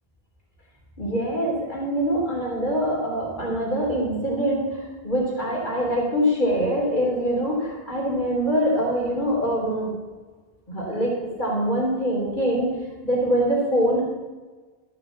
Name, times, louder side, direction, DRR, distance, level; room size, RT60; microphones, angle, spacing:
voice 1, 1.0-9.9 10.7-11.1 11.4-12.7 13.0-14.0, equal, 50° left, -4 dB, 3.6 m, -24 dB
13.0 x 6.6 x 7.2 m, 1.3 s
omnidirectional pair, 1.0 m